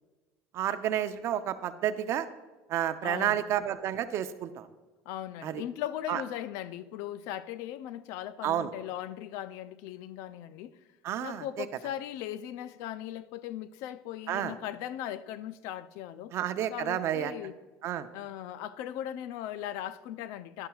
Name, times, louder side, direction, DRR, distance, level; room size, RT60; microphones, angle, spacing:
voice 1, 0.5-2.3 2.7-4.7 5.4-5.6 6.1-6.2 8.4-8.7 11.0-11.7 14.3-14.5 16.3-17.3 17.8-18.1, right 11 dB, 55° right, 0.7 m, -30 dB
voice 2, 3.0-3.4 5.1-10.8 11.2-16.3 16.7-17.5 18.1-20.7, left 11 dB, 70° left, 0.5 m, -38 dB
11.0 x 10.5 x 2.4 m
supercardioid pair, 100°, 6 cm